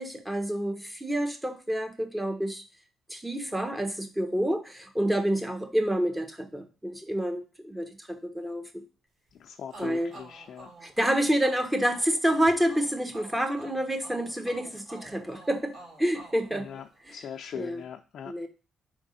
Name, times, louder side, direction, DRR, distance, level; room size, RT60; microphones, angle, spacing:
voice 1, 0.0-2.6 3.1-8.7 9.8-10.1 10.8-15.7 16.0-16.7 17.0-17.2 17.5-17.8 18.3-18.5, equal, 10° right, 5 dB, 1.2 m, -28 dB
voice 2, 9.4-10.7 16.5-16.8 17.1-18.3, left 8 dB, 65° left, 4 dB, 0.5 m, -40 dB
sound 1, 9.7-17.3, right 2 dB, 55° right, 2.9 m, -49 dB
5.1 x 3.6 x 5.3 m, 0.34 s
cardioid pair, 90°, 0 cm